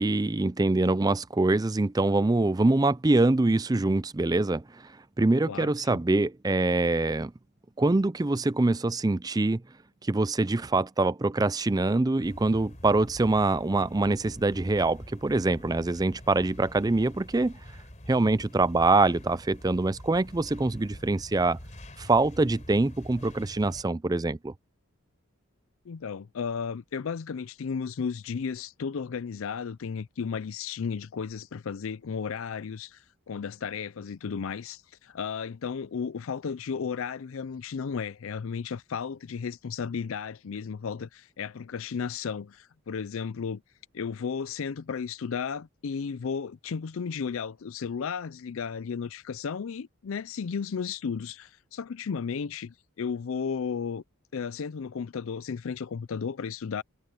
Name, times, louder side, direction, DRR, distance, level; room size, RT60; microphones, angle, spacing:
voice 1, 0.0-4.8 5.2-7.3 7.8-9.6 10.0-17.5 18.1-21.6 22.0-24.5, right 2 dB, 15° right, 0.4 m, -24 dB
voice 2, 5.5-6.0 25.9-33.0 33.3-43.6 43.9-54.0 54.3-56.8, left 6 dB, 65° left, 0.4 m, -34 dB
sound 1, 12.2-23.8, equal, 35° left, 3.8 m, -46 dB
head